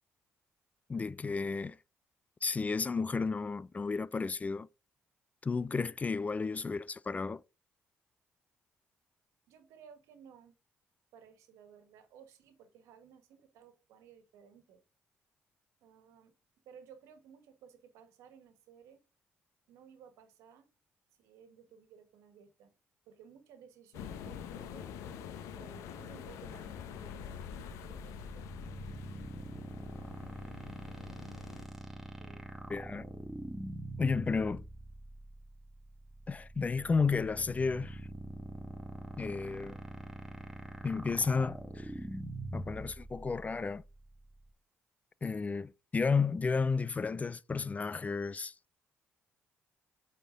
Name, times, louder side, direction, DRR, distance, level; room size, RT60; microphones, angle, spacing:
voice 1, 0.9-1.8 2.4-4.7 5.4-7.4 32.7-33.0 34.0-34.6 36.3-38.0 39.2-39.8 40.8-41.9 42.5-43.8 45.2-48.5, left 4 dB, 30° left, 0.4 m, -32 dB
voice 2, 9.5-10.5 11.1-14.8 15.8-16.3 16.6-19.0 19.7-20.7 21.2-22.7 23.1-25.0 25.5-28.5 32.2-32.5, right 7 dB, 85° right, 1.5 m, -57 dB
sound 1, 23.9-31.6, left 8 dB, 85° left, 0.9 m, -46 dB
sound 2, 27.4-44.5, right 1 dB, 5° right, 1.9 m, -44 dB
8.9 x 4.3 x 3.9 m
supercardioid pair, 65°, 5 cm